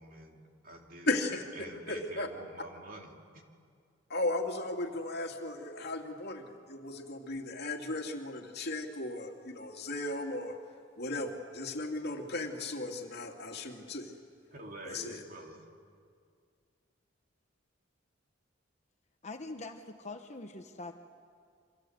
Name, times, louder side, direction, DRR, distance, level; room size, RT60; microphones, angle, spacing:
voice 1, 0.0-1.2 1.6-3.4 14.5-15.7, right 1 dB, 45° right, 2 dB, 2.8 m, -47 dB
voice 2, 1.1-1.4 1.9-2.3 4.1-10.6 11.0-14.1 14.8-15.2, left 2 dB, 55° left, 2 dB, 2.6 m, -36 dB
voice 3, 19.2-20.9, left 2 dB, 35° left, 5 dB, 1.1 m, -43 dB
29.0 x 25.5 x 8.0 m, 2.2 s
head